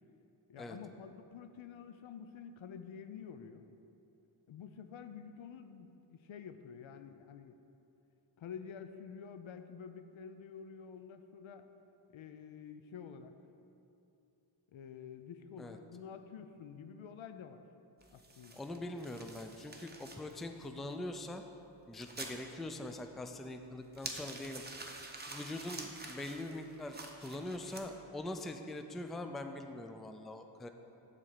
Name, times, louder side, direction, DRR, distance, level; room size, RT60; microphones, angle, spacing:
voice 1, 0.5-3.7 4.5-7.6 8.4-11.7 12.1-13.3 14.7-17.6 18.1-18.6, left 7 dB, 80° left, 9 dB, 0.6 m, -49 dB
sound 1, 18.0-27.8, right 2 dB, 20° right, 0.8 m, -49 dB
voice 2, 18.6-21.4 21.9-24.6 25.3-30.7, left 1 dB, ahead, 6 dB, 0.3 m, -43 dB
7.4 x 4.2 x 6.6 m, 2.8 s
wide cardioid pair, 75°, 46 cm